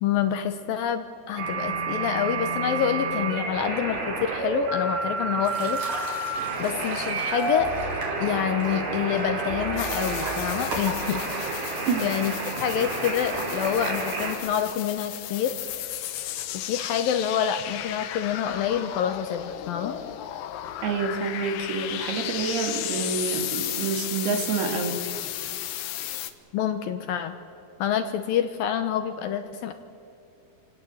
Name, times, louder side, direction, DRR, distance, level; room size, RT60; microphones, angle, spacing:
voice 1, 0.0-5.8 6.6-7.7 8.2-11.2 11.5-11.6 12.0-15.5 16.5-19.9 26.5-27.4 27.8-29.7, left 9 dB, 75° left, 8 dB, 2.4 m, -27 dB
sound 1, 1.4-14.3, right 3 dB, 90° right, 5.9 m, -30 dB
sound 2, 5.4-13.2, right 2 dB, 50° right, 4.9 m, -39 dB
sound 3, 9.8-26.3, left 12 dB, 90° left, 3.3 m, -34 dB
voice 2, 20.8-25.0, right 5 dB, 70° right, 4 dB, 4.2 m, -28 dB
28.0 x 18.0 x 8.0 m, 2.7 s
omnidirectional pair, 4.8 m